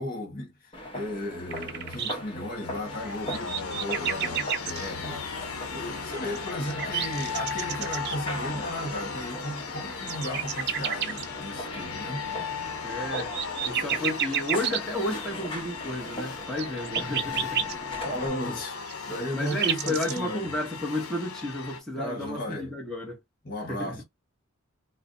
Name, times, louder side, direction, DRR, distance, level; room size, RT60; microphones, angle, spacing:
voice 1, 0.0-12.2 18.0-20.5 22.0-22.7 23.4-24.0, equal, 45° left, 1.5 m, -35 dB
sound 1, 0.7-18.3, equal, 25° left, 1.1 m, -40 dB
sound 2, 1.5-2.1 2.9-4.9 6.1-8.2 9.6-11.3 12.9-14.8 16.5-17.7 18.9-20.2, right 9 dB, 50° right, 0.5 m, -30 dB
sound 3, 2.4-21.8, left 5 dB, 80° left, 0.8 m, -37 dB
voice 2, 12.8-13.4 13.6-17.7 19.3-23.2 23.7-24.0, left 1 dB, 5° left, 0.9 m, -32 dB
4.7 x 2.2 x 2.6 m
head